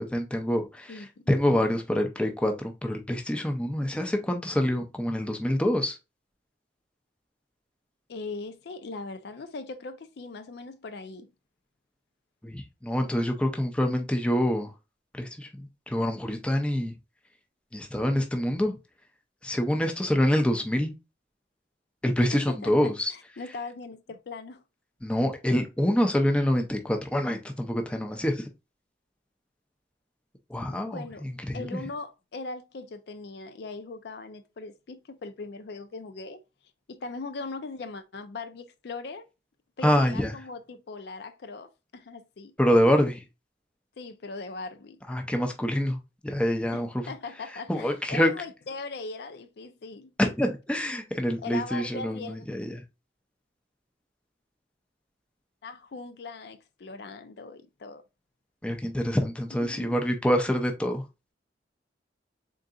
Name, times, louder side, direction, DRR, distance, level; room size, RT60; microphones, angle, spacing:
voice 1, 0.0-6.0 12.4-14.7 15.1-16.9 17.7-18.7 19.4-20.9 22.0-23.1 25.0-28.5 30.5-31.8 39.8-40.3 42.6-43.2 45.1-46.0 46.2-47.0 47.7-48.3 50.2-52.8 58.6-61.0, equal, 5° left, 0.5 m, -26 dB
voice 2, 0.9-1.2 8.1-11.3 22.2-24.6 30.7-31.3 31.5-36.4 36.9-39.3 39.8-42.5 44.0-45.0 46.7-50.1 51.4-52.5 55.6-58.0 59.7-60.0, left 3 dB, 60° left, 0.4 m, -40 dB
3.8 x 3.8 x 2.3 m
head